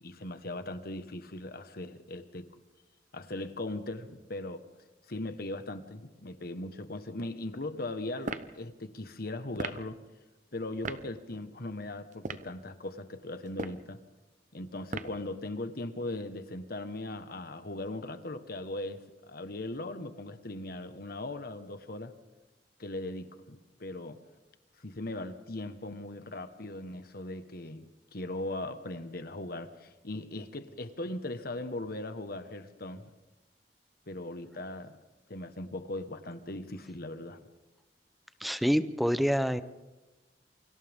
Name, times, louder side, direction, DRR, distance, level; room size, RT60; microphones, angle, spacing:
voice 1, 0.0-2.5 3.1-4.6 5.1-10.0 10.5-14.0 14.5-22.1 22.8-24.2 24.8-33.1 34.1-34.9 35.3-37.5, left 2 dB, 60° left, 9 dB, 1.5 m, -39 dB
sound 1, 8.2-8.5 9.6-9.8 10.8-11.0 12.1-12.5 13.5-13.9 14.9-15.2, right 3 dB, 45° right, 0.9 m, -36 dB
voice 2, 38.4-39.6, equal, ahead, 12 dB, 0.8 m, -27 dB
28.5 x 25.5 x 3.7 m, 1.1 s
head